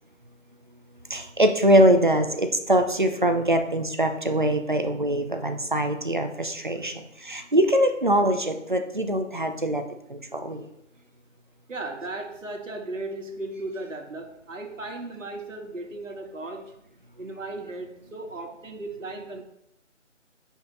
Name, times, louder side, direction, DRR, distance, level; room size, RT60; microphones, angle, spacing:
voice 1, 1.1-9.8 10.1-10.6, right 1 dB, 40° right, 6 dB, 0.7 m, -23 dB
voice 2, 6.7-7.1 11.7-16.7 17.2-19.4, right 2 dB, 80° right, 3 dB, 1.7 m, -36 dB
8.1 x 5.4 x 4.0 m, 0.78 s
figure-of-eight pair, 180°, 38 cm